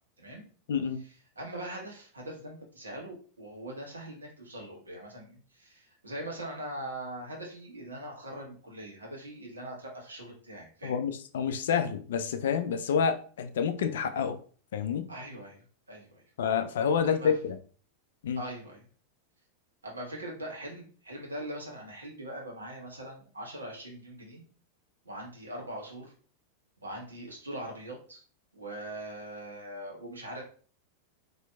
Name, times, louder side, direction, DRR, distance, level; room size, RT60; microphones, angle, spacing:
voice 1, 0.7-1.0 10.8-14.4 14.7-15.1 16.4-17.6 18.2-18.4, left 7 dB, 60° left, 0.4 m, -28 dB
voice 2, 1.4-11.0 15.1-16.2 17.0-17.3 18.3-18.8 19.8-24.4 25.0-26.1 26.8-28.2 28.5-30.4, right 1 dB, 75° right, 1.2 m, -41 dB
4.2 x 2.7 x 2.3 m
figure-of-eight pair, 90°, 0 cm